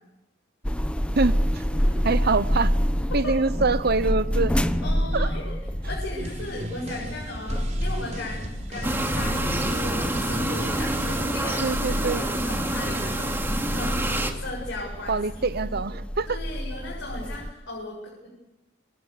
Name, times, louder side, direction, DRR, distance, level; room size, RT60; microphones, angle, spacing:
sound 1, 0.6-17.5, equal, 5° left, 1.0 m, -28 dB
voice 1, 1.1-1.6 2.0-2.8 3.1-4.5 5.1-5.3 11.6-12.2 15.1-16.4, right 3 dB, 55° right, 15 dB, 1.0 m, -25 dB
voice 2, 1.7-2.1 3.2-3.3 4.8-5.6 5.9-15.9 16.3-18.3, left 2 dB, 75° left, -3 dB, 7.6 m, -37 dB
sound 2, 6.2-11.3, right 1 dB, 40° right, 4.7 m, -36 dB
sound 3, 8.8-14.3, right 1 dB, 10° right, 2.7 m, -27 dB
27.0 x 26.0 x 6.7 m, 1.0 s
head